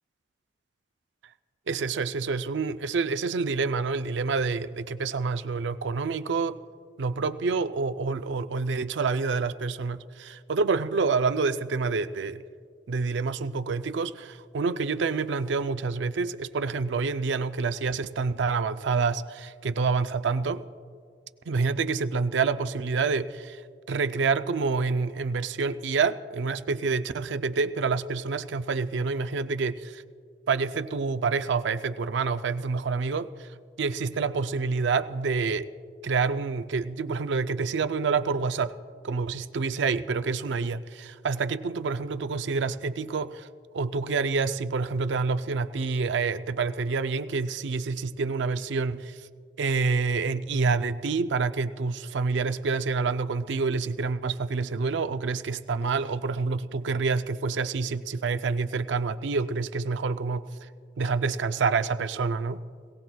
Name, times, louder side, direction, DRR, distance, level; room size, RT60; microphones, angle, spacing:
voice 1, 1.7-6.6 7.0-12.4 12.9-20.6 21.5-23.6 23.9-30.0 30.5-33.5 33.8-35.7 36.0-38.7 39.0-43.5 43.7-49.2 49.6-60.7 61.0-62.6, right 4 dB, 75° right, 11 dB, 0.5 m, -27 dB
22.0 x 16.5 x 2.3 m, 2.1 s
head